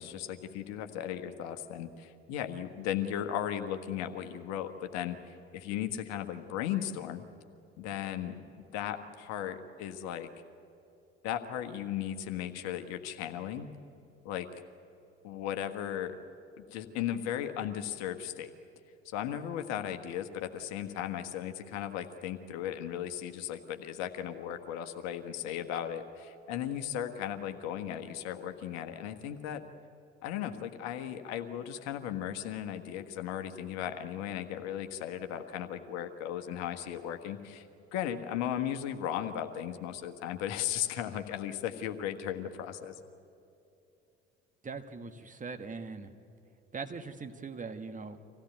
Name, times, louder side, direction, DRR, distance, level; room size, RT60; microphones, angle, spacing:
voice 1, 0.0-7.2 7.8-10.3 11.2-13.7 14.2-14.5 15.2-16.1 16.7-18.5 19.0-29.6 30.2-37.7 37.9-42.9, left 10 dB, 60° left, 7 dB, 1.5 m, -36 dB
voice 2, 44.6-46.1 46.7-48.2, right 4 dB, 25° right, 7 dB, 1.6 m, -41 dB
25.5 x 16.5 x 9.3 m, 2.7 s
figure-of-eight pair, 60°, 30 cm